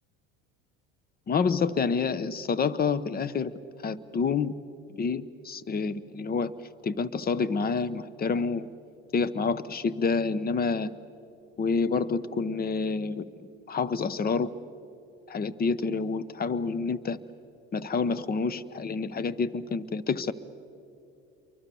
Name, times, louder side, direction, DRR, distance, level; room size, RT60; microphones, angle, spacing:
voice 1, 1.3-3.5 3.8-4.5 5.0-6.5 6.8-8.7 9.1-10.9 11.6-13.3 13.7-14.5 15.3-17.2 17.7-20.3, left 5 dB, 30° left, 18 dB, 1.0 m, -28 dB
28.5 x 23.5 x 7.0 m, 2.7 s
supercardioid pair, 95°, 30 cm